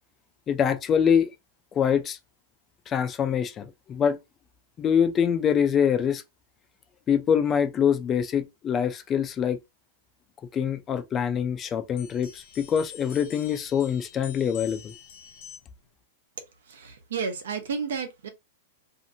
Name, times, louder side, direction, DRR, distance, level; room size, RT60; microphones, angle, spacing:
voice 1, 0.5-1.3 1.7-2.2 2.9-4.2 4.8-6.2 7.1-9.6 10.5-14.9, left 8 dB, 20° left, 0.4 m, -24 dB
sound 1, 12.0-15.9, left 10 dB, 50° left, 0.8 m, -46 dB
voice 2, 16.4-18.3, right 5 dB, 90° right, 0.9 m, -32 dB
2.8 x 2.5 x 2.6 m
supercardioid pair, 160°, 0 cm